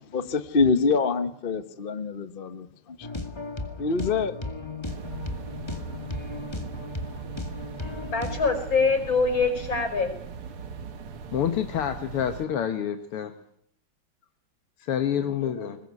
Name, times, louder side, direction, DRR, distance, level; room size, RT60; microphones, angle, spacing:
voice 1, 0.1-2.7 3.8-4.4, left 4 dB, 35° left, 0.9 m, -25 dB
sound 1, 3.0-8.6, left 2 dB, 15° left, 2.0 m, -35 dB
Machineroom Air Motor, 4.8-12.5, right 6 dB, 75° right, 2.4 m, -40 dB
voice 2, 8.1-10.1 15.1-15.7, left 4 dB, 60° left, 6.1 m, -25 dB
voice 3, 11.3-13.3 14.9-15.8, left 9 dB, 85° left, 2.1 m, -27 dB
21.0 x 21.0 x 9.6 m
omnidirectional pair, 2.4 m